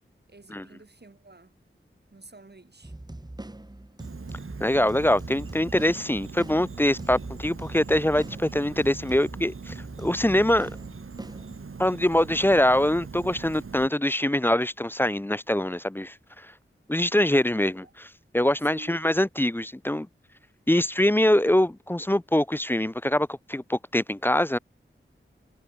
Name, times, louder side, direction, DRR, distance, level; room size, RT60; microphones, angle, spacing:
voice 1, 0.3-1.5 2.1-2.9 18.7-19.0, right 3 dB, 50° right, 5.6 m, -49 dB
sound 1, 2.8-11.9, right 1 dB, 20° right, 1.7 m, -42 dB
Insect, 4.0-13.9, right 5 dB, 80° right, 1.5 m, -41 dB
voice 2, 4.6-10.7 11.8-16.5 16.9-20.1 20.7-24.6, left 1 dB, 10° left, 0.4 m, -24 dB
wide cardioid pair, 75°, 21 cm